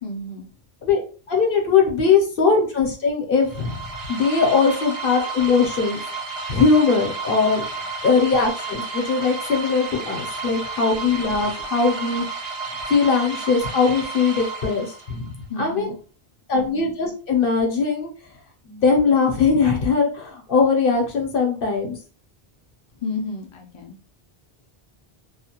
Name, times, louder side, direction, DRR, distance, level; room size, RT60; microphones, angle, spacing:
voice 1, 0.0-0.5 12.7-12.9 15.5-15.9 23.0-24.0, left 3 dB, 40° left, 1 dB, 0.4 m, -32 dB
voice 2, 1.3-6.0 6.5-7.6 8.0-12.2 12.9-15.3 15.6-15.9 16.5-18.1 18.7-22.0, left 5 dB, 65° left, 1 dB, 0.9 m, -20 dB
sound 1, 3.4-15.3, right 3 dB, 75° right, 0.8 m, -32 dB
2.4 x 2.2 x 2.8 m, 0.37 s
omnidirectional pair, 1.0 m